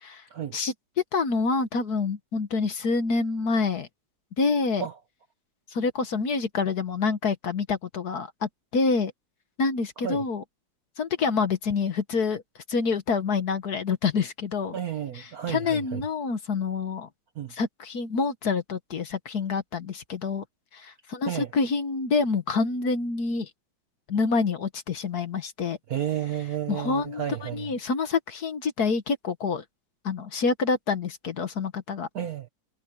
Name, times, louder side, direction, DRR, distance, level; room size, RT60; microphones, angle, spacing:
voice 1, 1.1-3.9 4.4-4.8 5.7-9.1 9.6-10.4 11.0-12.4 12.7-14.8 15.1-17.1 17.5-20.4 20.7-23.5 24.1-25.8 26.7-29.6 30.0-32.1, left 4 dB, 50° left, 1.6 m, -27 dB
voice 2, 14.7-16.0 17.4-17.5 21.2-21.5 25.9-27.7 32.1-32.5, right 10 dB, 60° right, 1.0 m, -32 dB
omnidirectional pair, 2.3 m